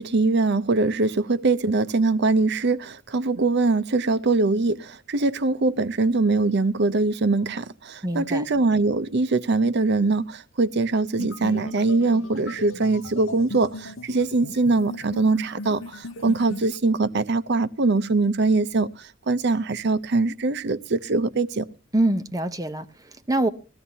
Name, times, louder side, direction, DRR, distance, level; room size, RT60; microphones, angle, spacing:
voice 1, 0.0-21.7, right 3 dB, 60° right, 0.7 m, -22 dB
voice 2, 8.0-8.5 21.9-23.5, right 1 dB, 20° right, 0.7 m, -25 dB
sound 1, 11.2-16.8, left 2 dB, 80° left, 0.9 m, -38 dB
21.0 x 14.5 x 2.8 m
head